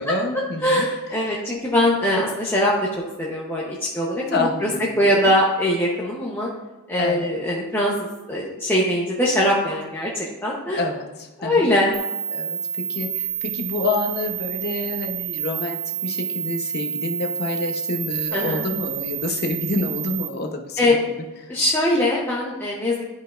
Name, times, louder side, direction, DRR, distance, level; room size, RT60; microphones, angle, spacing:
voice 1, 0.0-0.9 1.2-1.4 4.3-5.3 7.0-7.3 10.8-11.7 12.3-21.0 21.4-21.6, left 2 dB, 45° left, 3 dB, 0.9 m, -28 dB
voice 2, 0.6-2.7 3.2-4.7 5.0-6.5 6.9-10.1 10.4-10.8 11.4-11.9 18.3-18.6 20.8-21.0 21.5-22.9, left 1 dB, 10° left, -5 dB, 0.8 m, -21 dB
sound 1, 11.9-20.3, right 9 dB, 60° right, 1.3 m, -29 dB
11.5 x 5.4 x 2.5 m, 1.1 s
head